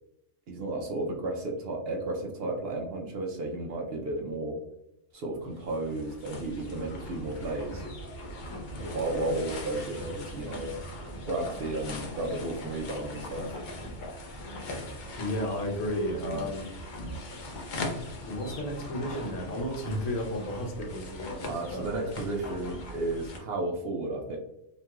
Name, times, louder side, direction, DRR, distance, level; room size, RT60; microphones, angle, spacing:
voice 1, 0.5-4.6 5.1-7.8 8.9-10.8 11.3-13.6 16.2-16.5 21.5-24.4, right 2 dB, 65° right, 0 dB, 0.7 m, -33 dB
sound 1, 5.4-23.4, left 1 dB, 55° left, 0.5 m, -40 dB
voice 2, 15.2-16.7 18.2-21.8, left 1 dB, 80° left, 2 dB, 1.1 m, -33 dB
2.9 x 2.8 x 2.2 m, 0.86 s
omnidirectional pair, 1.3 m